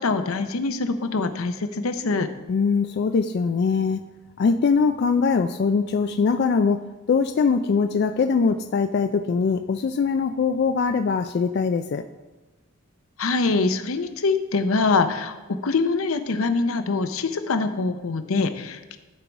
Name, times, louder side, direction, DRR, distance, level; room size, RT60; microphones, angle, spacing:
voice 1, 0.0-2.3 13.2-15.4 15.6-19.0, left 3 dB, 85° left, 9 dB, 0.7 m, -24 dB
voice 2, 2.5-4.0 4.4-6.8 7.1-12.0, left 5 dB, 50° left, 8 dB, 0.3 m, -22 dB
13.0 x 4.6 x 4.0 m, 1.1 s
head